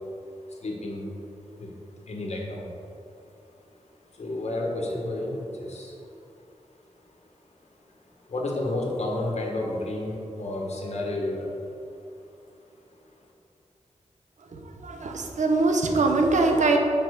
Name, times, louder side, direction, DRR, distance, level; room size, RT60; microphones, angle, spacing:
voice 1, 0.5-1.7 2.1-2.7 3.0-3.1 3.7-3.8 4.1-6.1 8.3-12.1, left 1 dB, 65° left, -1 dB, 1.5 m, -31 dB
voice 2, 14.5-16.8, right 3 dB, 80° right, 3 dB, 0.9 m, -23 dB
5.8 x 5.0 x 6.6 m, 2.6 s
wide cardioid pair, 85°, 12 cm